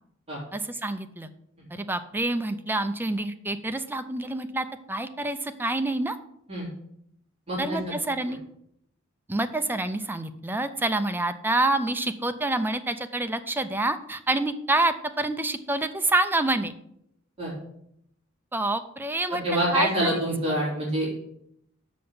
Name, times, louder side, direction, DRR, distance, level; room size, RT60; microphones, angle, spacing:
voice 1, 0.5-1.3 1.7-6.2 7.6-8.4 9.3-16.7 18.5-19.4 19.7-20.6, right 2 dB, 10° right, 9 dB, 0.5 m, -27 dB
voice 2, 7.5-7.9 17.4-17.5 19.4-21.1, equal, 30° right, -5 dB, 3.4 m, -26 dB
6.8 x 5.2 x 7.1 m, 0.73 s
head